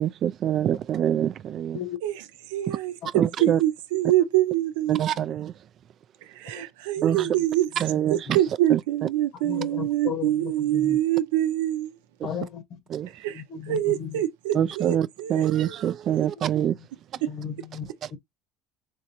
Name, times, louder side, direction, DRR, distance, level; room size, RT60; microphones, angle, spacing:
voice 1, 0.0-1.8 2.7-2.8 3.1-3.6 4.9-5.5 7.0-7.3 7.8-8.4 8.7-8.8 12.9-13.1 14.5-16.8, right 10 dB, 45° right, 0.3 m, -25 dB
voice 2, 2.0-5.0 6.2-7.7 8.1-12.0 13.1-16.3 17.2-17.3, right 13 dB, 90° right, 0.6 m, -25 dB
voice 3, 7.0-7.3 9.4-11.0 12.2-12.8 13.3-14.2 14.5-14.7 17.2-18.2, left 7 dB, 60° left, 1.2 m, -35 dB
3.5 x 3.2 x 2.9 m
supercardioid pair, 110°, 0 cm